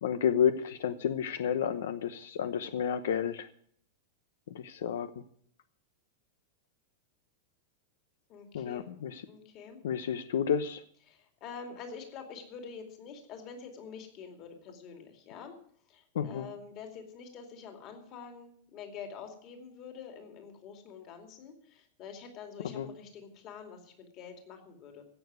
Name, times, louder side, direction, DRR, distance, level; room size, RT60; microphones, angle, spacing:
voice 1, 0.0-3.5 4.5-5.1 8.5-9.3 9.8-10.8 16.1-16.5 22.6-22.9, left 8 dB, 80° left, 11 dB, 0.9 m, -31 dB
voice 2, 8.3-8.9 9.3-9.8 11.1-15.5 15.9-25.0, left 6 dB, 30° left, 4 dB, 2.6 m, -46 dB
16.5 x 6.9 x 9.5 m, 0.62 s
supercardioid pair, 175°, 0 cm